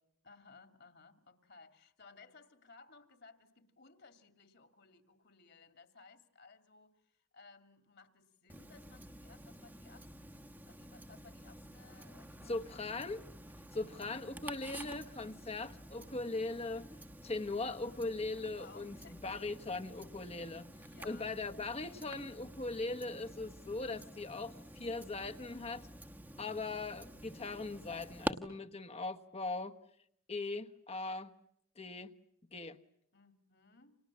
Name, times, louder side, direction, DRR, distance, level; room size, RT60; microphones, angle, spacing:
voice 1, 0.2-12.8 13.8-14.3 14.7-15.0 18.5-19.4 20.9-21.4 33.1-34.0, left 4 dB, 55° left, 2.7 m, -60 dB
Tick-tock, 8.5-28.3, right 1 dB, 10° right, 1.3 m, -49 dB
voice 2, 12.4-13.2 13.7-16.8 17.2-19.0 19.2-20.7 21.0-25.9 26.4-29.7 30.3-31.3 31.8-32.1 32.5-32.8, left 3 dB, 30° left, 1.3 m, -40 dB
30.0 x 27.0 x 7.4 m
head